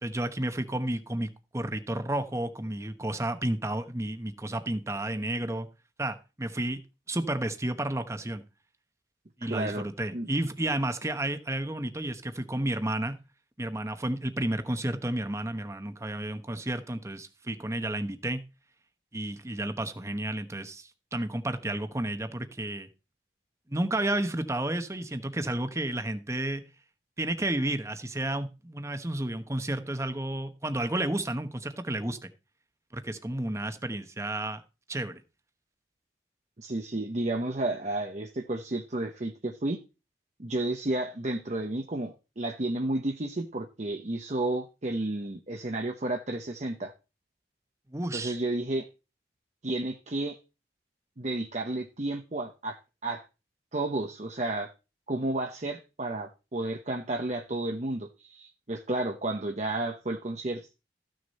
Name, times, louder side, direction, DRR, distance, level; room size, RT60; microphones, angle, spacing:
voice 1, 0.0-5.7 6.0-6.8 7.1-8.4 9.4-13.1 13.6-18.4 19.1-22.9 23.7-26.6 27.2-32.3 32.9-34.6 34.9-35.2 47.9-48.4, right 1 dB, 15° right, 1.0 m, -31 dB
voice 2, 9.5-9.9 10.1-10.3 36.6-39.8 40.4-46.9 48.1-48.9 49.6-50.4 51.2-53.2 53.7-54.7 55.1-60.8, right 2 dB, 40° right, 0.9 m, -32 dB
14.0 x 6.5 x 4.2 m
head